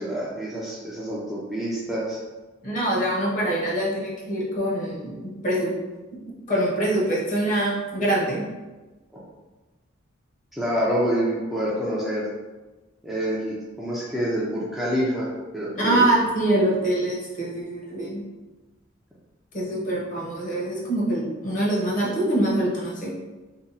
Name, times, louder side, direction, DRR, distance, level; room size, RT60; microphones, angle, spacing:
voice 1, 0.0-2.2 9.1-9.2 10.5-12.3 13.0-16.0, equal, ahead, -7 dB, 0.4 m, -27 dB
voice 2, 2.6-5.7 6.5-8.4 15.7-18.2 19.5-23.1, right 1 dB, 40° left, -4 dB, 0.8 m, -24 dB
2.7 x 2.1 x 3.9 m, 1.2 s
head